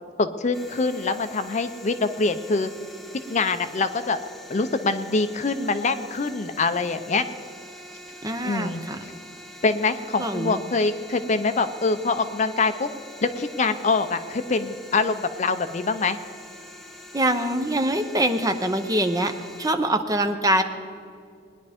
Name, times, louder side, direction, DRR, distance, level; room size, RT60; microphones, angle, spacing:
voice 1, 0.2-2.7 3.3-4.2 4.5-7.2 8.4-8.8 9.6-12.9 13.2-16.2, left 3 dB, 40° left, 10 dB, 0.6 m, -24 dB
sound 1, 0.5-19.7, equal, ahead, 1.1 m, -44 dB
voice 2, 8.2-9.0 10.2-10.6 17.1-19.3 19.6-20.6, right 1 dB, 20° right, 7 dB, 0.7 m, -24 dB
20.0 x 10.5 x 3.5 m, 2.4 s
head